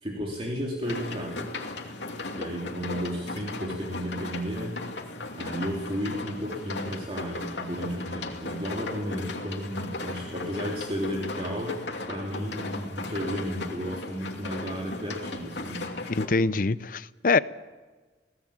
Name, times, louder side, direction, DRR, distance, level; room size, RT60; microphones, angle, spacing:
voice 1, 0.0-1.5 1.9-2.1 2.4-4.8 5.4-11.8 12.1-15.9, equal, 30° right, -2 dB, 3.3 m, -33 dB
sound 1, 0.8-16.3, left 2 dB, 85° left, 2.7 m, -37 dB
voice 2, 16.1-17.4, left 3 dB, 50° left, 17 dB, 0.6 m, -24 dB
22.0 x 17.5 x 8.9 m, 1.4 s
head